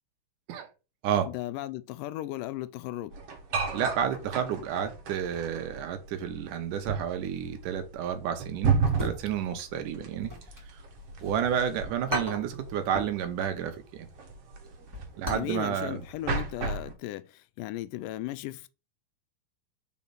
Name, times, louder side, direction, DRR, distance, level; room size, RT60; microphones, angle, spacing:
voice 1, 1.2-3.2 15.3-18.7, left 15 dB, 85° left, 2.1 m, -36 dB
sound 1, 3.1-16.9, right 5 dB, 60° right, 2.0 m, -34 dB
voice 2, 3.7-8.7 9.0-10.3 11.2-14.1 15.2-16.0, right 9 dB, 75° right, 2.4 m, -30 dB
sound 2, 8.8-9.6 9.9-11.3 11.7-11.8 12.1-13.2 13.5-13.7 14.1-15.6 15.8-15.9 16.4-16.7 16.9-17.0, right 1 dB, 5° right, 1.7 m, -36 dB
5.3 x 4.3 x 5.7 m
omnidirectional pair, 3.8 m